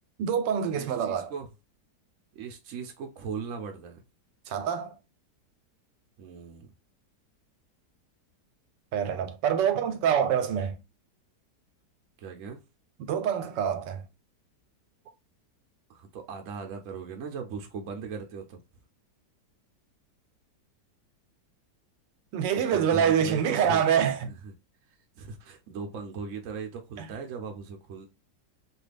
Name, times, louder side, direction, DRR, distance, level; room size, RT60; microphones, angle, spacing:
voice 1, 0.2-1.3 4.5-5.0 8.9-10.8 13.0-14.0 22.3-24.3 27.0-27.1, right 8 dB, 90° right, 1.3 m, -26 dB
voice 2, 0.7-1.5 2.3-4.0 6.2-6.7 12.2-12.6 15.9-18.6 22.7-23.9 24.3-24.5 25.2-28.1, right 5 dB, 70° right, 0.8 m, -38 dB
3.2 x 2.3 x 3.3 m
omnidirectional pair, 1.9 m